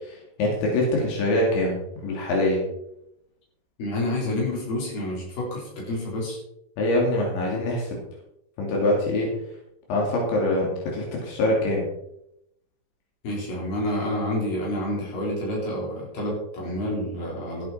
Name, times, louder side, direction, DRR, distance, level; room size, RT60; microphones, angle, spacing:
voice 1, 0.0-2.6 6.8-8.0 8.6-9.3 9.9-11.9, left 1 dB, 85° left, -2 dB, 5.1 m, -24 dB
voice 2, 3.8-6.4 13.2-17.7, left 1 dB, 50° left, -3 dB, 5.7 m, -28 dB
14.5 x 8.7 x 4.3 m, 0.80 s
omnidirectional pair, 5.1 m